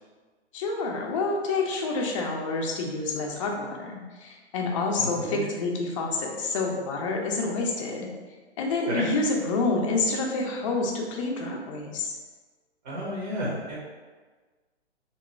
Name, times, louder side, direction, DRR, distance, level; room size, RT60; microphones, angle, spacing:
voice 1, 0.5-8.1 8.6-12.2, left 3 dB, 30° left, 0 dB, 0.5 m, -28 dB
voice 2, 5.0-5.4 8.9-9.1 12.8-13.8, equal, 40° right, -5 dB, 0.9 m, -31 dB
2.9 x 2.2 x 4.2 m, 1.4 s
hypercardioid pair, 130°, 34 cm